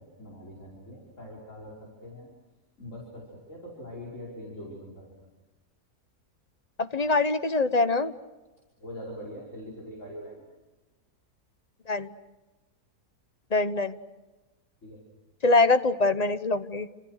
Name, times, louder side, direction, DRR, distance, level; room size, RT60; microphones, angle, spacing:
voice 1, 0.0-2.3 2.8-5.3 8.8-10.4 14.8-15.0, equal, 50° left, -3 dB, 5.8 m, -43 dB
voice 2, 6.8-8.1 11.9-12.1 13.5-14.0 15.4-16.9, left 3 dB, 30° left, 11 dB, 0.8 m, -24 dB
29.0 x 27.0 x 6.5 m, 1.1 s
omnidirectional pair, 1.7 m